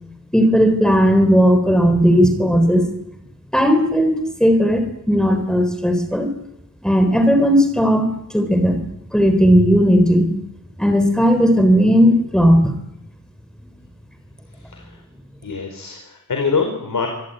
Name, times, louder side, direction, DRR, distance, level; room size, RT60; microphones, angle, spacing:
voice 1, 0.3-2.9 3.5-4.1 4.4-6.3 6.8-8.1 8.3-8.8 9.1-10.3 10.8-12.7, equal, ahead, 7 dB, 3.8 m, -15 dB
voice 2, 14.5-15.0 15.4-17.1, left 5 dB, 90° left, 4 dB, 4.8 m, -24 dB
26.5 x 22.0 x 9.2 m, 0.84 s
wide cardioid pair, 120°, 32 cm